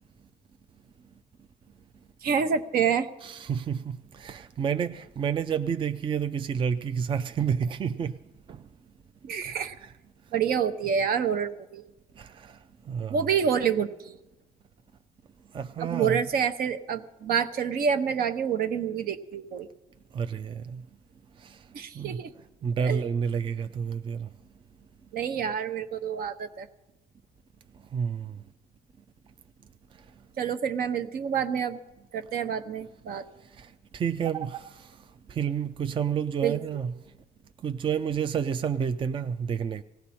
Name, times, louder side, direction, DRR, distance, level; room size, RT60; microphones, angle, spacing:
voice 1, 2.2-3.1 9.2-9.7 10.3-11.8 13.1-14.2 15.8-19.7 21.7-22.3 22.8-23.0 25.1-26.7 30.4-31.8 32.1-33.2 36.4-36.6, right 7 dB, 60° right, 0.9 m, -27 dB
voice 2, 3.2-8.2 8.5-8.6 9.3-9.9 12.2-12.6 12.9-13.2 15.5-16.2 20.1-20.8 21.4-21.6 22.0-22.2 22.6-24.3 27.9-28.4 33.6-33.7 33.9-34.9 35.3-36.9 37.6-39.8, right 7 dB, 30° right, 0.4 m, -30 dB
19.0 x 16.5 x 4.3 m
cardioid pair, 110°, 17 cm